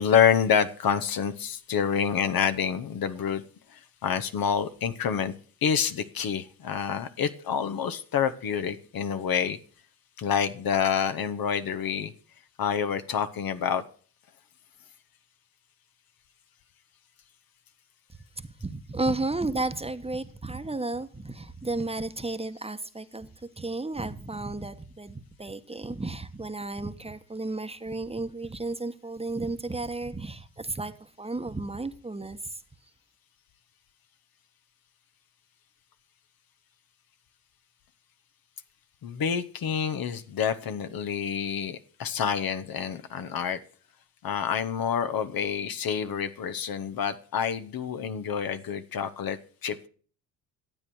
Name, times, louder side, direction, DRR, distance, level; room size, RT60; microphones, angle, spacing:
voice 1, 0.0-3.4 3.7-5.3 5.6-9.6 10.2-12.1 12.6-13.8 39.0-43.6 44.2-49.9, left 8 dB, 55° left, 10 dB, 1.2 m, -27 dB
voice 2, 18.4-23.3 23.6-32.6, right 2 dB, 15° right, 9 dB, 1.2 m, -33 dB
12.5 x 8.5 x 6.3 m, 0.43 s
supercardioid pair, 65°, 43 cm